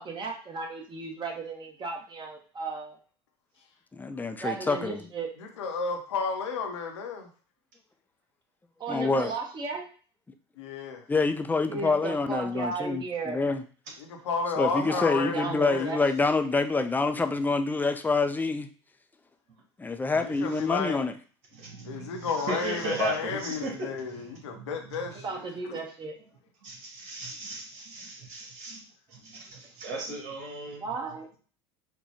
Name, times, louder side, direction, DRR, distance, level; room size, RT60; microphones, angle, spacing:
voice 1, 0.0-3.0 4.4-5.4 8.8-9.9 11.7-13.4 14.7-16.0 25.1-26.2 30.8-31.4, right 4 dB, 30° right, 1 dB, 1.0 m, -35 dB
voice 2, 3.9-5.0 8.9-9.3 11.1-13.6 14.6-18.7 19.8-21.1, left 3 dB, 10° left, 8 dB, 0.4 m, -27 dB
voice 3, 5.4-7.3 10.6-11.0 14.2-15.9 20.0-21.0 21.8-25.8, left 5 dB, 80° left, 3 dB, 0.7 m, -32 dB
voice 4, 21.5-25.3 26.6-30.9, right 3 dB, 60° right, -2 dB, 1.8 m, -37 dB
4.3 x 2.2 x 2.9 m, 0.40 s
hypercardioid pair, 75°, 14 cm